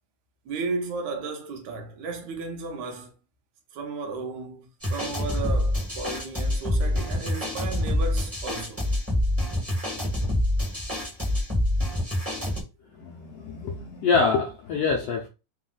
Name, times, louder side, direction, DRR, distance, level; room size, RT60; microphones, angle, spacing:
voice 1, 0.5-3.1 3.7-8.8, right 3 dB, 75° right, 2.1 m, -34 dB
sound 1, 4.8-12.6, left 1 dB, 20° right, 0.3 m, -26 dB
voice 2, 13.0-15.3, left 4 dB, 75° left, 1.4 m, -25 dB
5.0 x 2.3 x 3.8 m
omnidirectional pair, 3.4 m